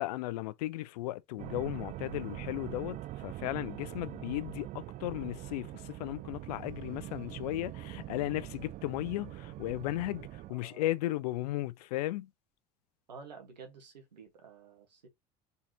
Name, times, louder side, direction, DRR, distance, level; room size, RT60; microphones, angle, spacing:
voice 1, 0.0-12.3, left 16 dB, 70° left, 0.5 m, -35 dB
sound 1, 1.4-10.5, right 16 dB, 40° right, 0.4 m, -43 dB
voice 2, 10.5-11.1 13.1-15.1, right 5 dB, 85° right, 1.5 m, -51 dB
4.0 x 4.0 x 2.9 m
hypercardioid pair, 75°, 21 cm